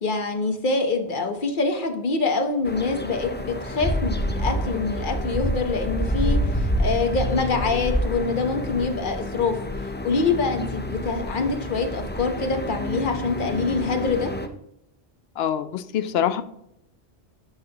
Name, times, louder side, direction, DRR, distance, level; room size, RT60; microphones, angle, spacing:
voice 1, 0.0-9.6 10.0-14.3, left 4 dB, 45° left, 5 dB, 1.1 m, -25 dB
sound 1, 2.6-14.5, equal, 15° left, 0.3 m, -28 dB
voice 2, 15.4-16.4, left 9 dB, 65° left, 13 dB, 0.8 m, -24 dB
11.5 x 5.9 x 2.9 m, 0.80 s
omnidirectional pair, 1.2 m